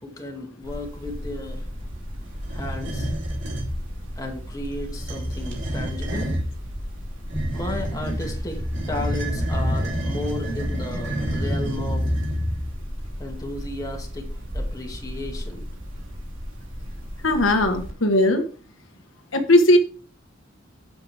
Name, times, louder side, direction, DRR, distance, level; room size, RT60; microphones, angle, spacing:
voice 1, 0.0-1.7 2.5-3.1 4.2-6.4 7.5-12.0 13.2-15.7, left 1 dB, 20° left, 1 dB, 2.3 m, -34 dB
sound 1, 0.6-17.9, equal, 85° right, 3.1 m, -35 dB
sound 2, 2.4-3.7 4.9-6.5 7.3-12.8, equal, 65° right, 3.4 m, -28 dB
voice 2, 17.2-18.4 19.3-19.8, left 1 dB, 80° left, 5 dB, 1.5 m, -18 dB
9.6 x 7.8 x 3.5 m, 0.38 s
head